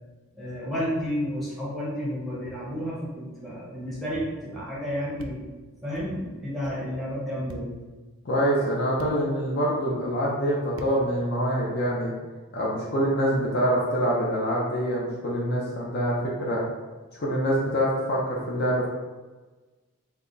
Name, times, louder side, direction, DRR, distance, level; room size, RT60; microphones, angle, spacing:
voice 1, 0.3-5.5 5.8-7.7, equal, ahead, -8 dB, 1.1 m, -31 dB
sound 1, 5.2-5.3 5.9-6.1 6.6-6.8 7.5-7.7 9.0-9.1 10.8-10.9, right 2 dB, 60° right, 0.3 m, -41 dB
voice 2, 8.2-12.1 12.5-16.6 17.1-18.9, equal, 45° left, -4 dB, 0.6 m, -25 dB
3.4 x 2.2 x 3.8 m, 1.2 s
head